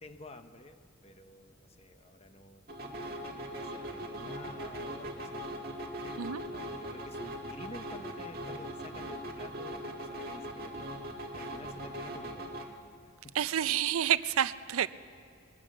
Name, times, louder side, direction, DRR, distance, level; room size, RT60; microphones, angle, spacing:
voice 1, 0.0-2.6 3.0-5.5 6.0-11.1 11.3-12.7 13.2-13.4, left 2 dB, 30° left, 9 dB, 0.8 m, -51 dB
sound 1, 2.7-12.7, equal, 45° right, 1.8 m, -40 dB
voice 2, 13.3-14.9, right 10 dB, 85° right, 15 dB, 0.5 m, -29 dB
21.5 x 17.5 x 7.2 m, 2.3 s
head